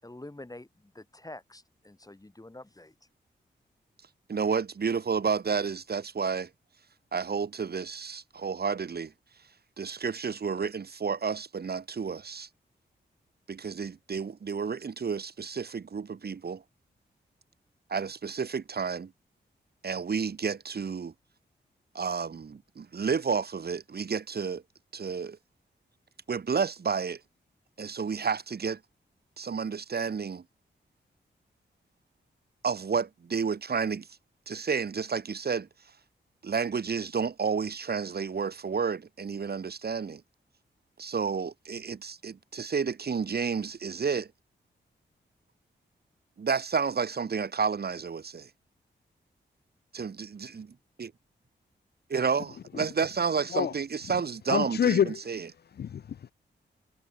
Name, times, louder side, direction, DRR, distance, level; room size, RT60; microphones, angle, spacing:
voice 1, 0.0-2.9, left 2 dB, 20° left, 6.5 m, -47 dB
voice 2, 4.3-6.5 7.1-9.1 9.8-12.5 13.5-16.6 17.9-19.1 19.8-21.1 22.0-24.6 24.9-25.4 26.3-27.2 27.8-28.8 29.4-30.4 32.6-34.1 34.5-35.7 36.4-40.2 41.0-44.3 46.4-48.5 49.9-50.7 51.0-51.1 52.1-55.5, right 5 dB, 55° right, 1.9 m, -31 dB
voice 3, 54.5-55.2 55.8-56.3, left 8 dB, 60° left, 0.5 m, -27 dB
cardioid pair, 55°, 19 cm